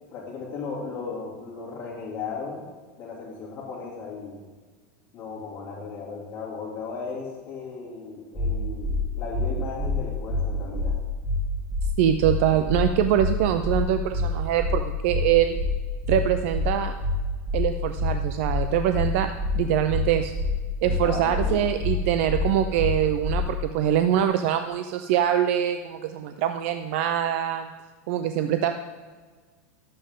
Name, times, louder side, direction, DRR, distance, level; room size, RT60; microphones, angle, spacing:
voice 1, 0.1-2.6 3.0-4.4 5.1-11.0 20.8-21.6, left 4 dB, 30° left, -5 dB, 2.7 m, -36 dB
sound 1, 8.3-8.5 8.8-9.0 9.3-9.5 9.8-9.9 10.3-10.4 10.7-10.9 11.2-11.4 11.7-11.9 12.2-12.3 12.7-12.8 13.1-13.3 13.6-13.8 14.1-14.3 14.6-14.7 15.1-15.2 15.5-15.7 16.0-16.2 16.5-16.7 17.0-17.1 17.5-17.6 17.9-18.1 18.4-18.6 18.9-19.1 19.4-19.5 19.9-20.0 20.3-20.5 20.8-21.0 21.3-21.5 21.8-21.9 22.3-22.4 22.7-22.9 23.2-23.4, left 1 dB, 5° left, 2.1 m, -26 dB
voice 2, 12.0-15.6 16.1-16.9 17.5-19.3 19.5-20.3 20.8-27.7 28.1-28.7, right 10 dB, 60° right, 8 dB, 0.5 m, -24 dB
12.0 x 7.7 x 3.7 m, 1.5 s
supercardioid pair, 160°, 8 cm